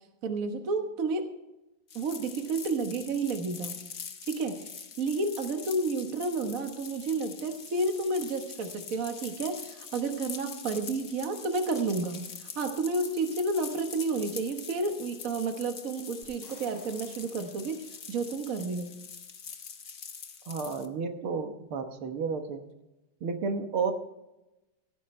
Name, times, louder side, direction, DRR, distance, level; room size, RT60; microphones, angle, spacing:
voice 1, 0.2-1.3 1.9-3.8 4.3-4.7 5.0-18.9, right 3 dB, 45° right, 5 dB, 1.5 m, -31 dB
sound 1, 1.9-20.9, left 6 dB, 45° left, 1.2 m, -44 dB
sound 2, 16.2-18.3, left 2 dB, 65° left, 5.5 m, -56 dB
voice 2, 20.5-22.6 23.2-23.9, right 5 dB, 75° right, 6 dB, 2.1 m, -32 dB
16.5 x 14.0 x 3.3 m, 0.97 s
omnidirectional pair, 2.4 m